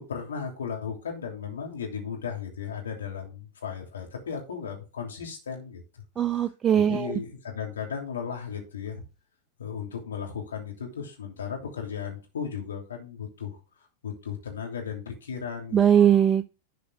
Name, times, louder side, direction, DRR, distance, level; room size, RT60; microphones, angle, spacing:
voice 1, 0.0-6.0 6.3-9.0 9.6-13.6 14.0-15.8, left 7 dB, 65° left, 3.0 m, -36 dB
voice 2, 6.2-7.2 15.7-16.6, right 9 dB, 20° right, 0.4 m, -21 dB
11.0 x 5.1 x 3.5 m
figure-of-eight pair, 90°, 0 cm